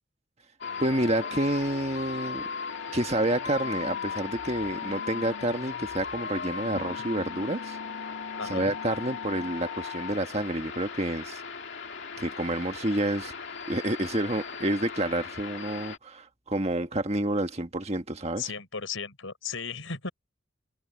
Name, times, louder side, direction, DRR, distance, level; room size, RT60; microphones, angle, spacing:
sound 1, 0.6-16.0, left 6 dB, 60° left, 2.4 m, -37 dB
voice 1, 0.8-2.4 2.9-7.8 8.4-11.4 12.2-13.3 13.7-18.5, right 1 dB, 30° right, 1.6 m, -29 dB
voice 2, 8.4-8.7 18.4-20.1, left 5 dB, 75° left, 4.9 m, -35 dB
open air
head